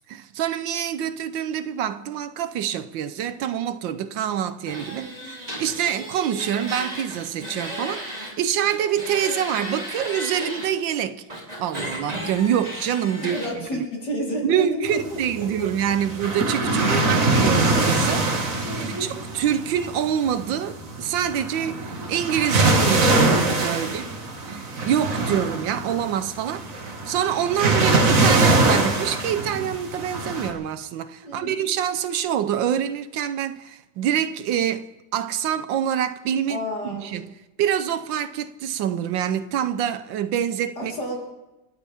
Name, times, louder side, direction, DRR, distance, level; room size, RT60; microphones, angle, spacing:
voice 1, 0.1-11.2 11.6-13.8 14.4-24.1 24.5-26.7 27.0-37.3 37.6-40.9, right 9 dB, 75° right, 1.4 m, -26 dB
sound 1, 4.7-8.3 8.6-10.7 11.3-13.5, equal, 20° right, 3.6 m, -34 dB
voice 2, 5.0-5.3 13.2-15.7 16.8-17.2 18.6-19.1 23.8-24.2 31.2-31.5 36.5-37.1 40.8-41.2, equal, 55° left, 4.6 m, -31 dB
sound 2, 14.9-30.5, right 2 dB, 45° right, 2.0 m, -23 dB
30.0 x 12.5 x 3.5 m
omnidirectional pair, 2.1 m